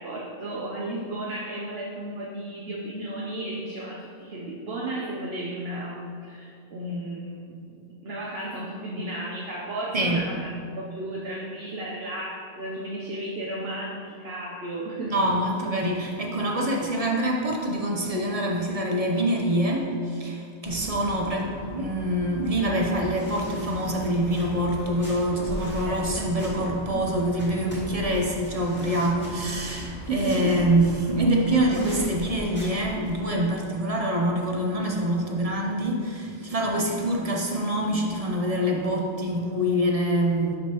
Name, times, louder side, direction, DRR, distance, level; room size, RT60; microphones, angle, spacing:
voice 1, 0.0-15.1 25.8-26.3 26.9-27.1 29.7-30.5, right 1 dB, 60° right, -4 dB, 1.0 m, -34 dB
voice 2, 15.1-40.6, right 1 dB, 35° right, 0 dB, 0.8 m, -25 dB
sound 1, 20.6-33.2, right 1 dB, 10° left, 2.0 m, -39 dB
11.5 x 5.1 x 3.0 m, 2.4 s
omnidirectional pair, 1.2 m